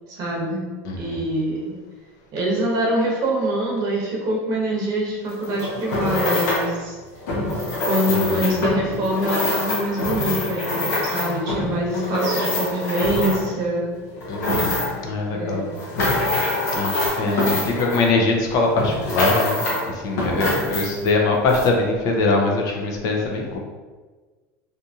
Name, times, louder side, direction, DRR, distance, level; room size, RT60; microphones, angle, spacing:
voice 1, 0.1-0.6 1.0-1.7 2.3-6.9 7.9-14.1 15.3-15.7 17.2-17.6 20.3-20.9, right 1 dB, 50° right, -2 dB, 0.8 m, -24 dB
voice 2, 0.8-1.2 8.1-8.5 14.3-14.7 14.9-15.7 16.7-23.6, left 3 dB, 50° left, 1 dB, 0.5 m, -22 dB
sound 1, 5.3-6.7 7.2-13.6 14.1-15.1 15.6-18.4 18.8-19.9 20.2-21.1 21.5-21.7, left 2 dB, 80° left, 0.8 m, -25 dB
2.8 x 2.5 x 2.3 m, 1.4 s
supercardioid pair, 115°, 8 cm